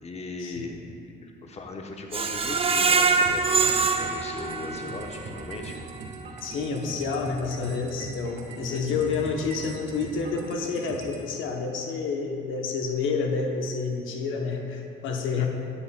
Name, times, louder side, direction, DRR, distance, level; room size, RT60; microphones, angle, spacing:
voice 1, 0.0-5.9 8.7-9.3 15.3-15.5, left 3 dB, 35° left, 2 dB, 0.9 m, -38 dB
Screech, 2.1-5.1 5.5-5.6 6.0-6.1, right 4 dB, 30° right, 0.5 m, -24 dB
sound 1, 3.3-11.2, right 2 dB, 70° right, 1.4 m, -41 dB
voice 2, 6.4-15.5, left 4 dB, 80° left, 2 dB, 0.8 m, -29 dB
12.0 x 7.1 x 2.2 m, 2.5 s
cardioid pair, 90°, 20 cm